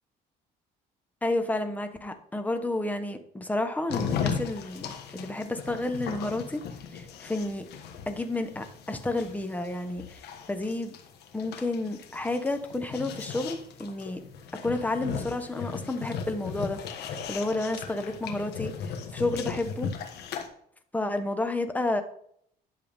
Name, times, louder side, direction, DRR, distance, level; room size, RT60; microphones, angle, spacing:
voice 1, 1.2-6.6 6.9-7.6 8.1-10.2 10.5-10.9 11.3-14.2 14.6-18.7 19.1-19.9 20.9-22.0, left 2 dB, 10° left, 7 dB, 1.1 m, -31 dB
sound 1, 3.9-20.5, left 7 dB, 75° left, 1.4 m, -37 dB
11.0 x 6.9 x 3.6 m, 0.67 s
cardioid pair, 110°, 17 cm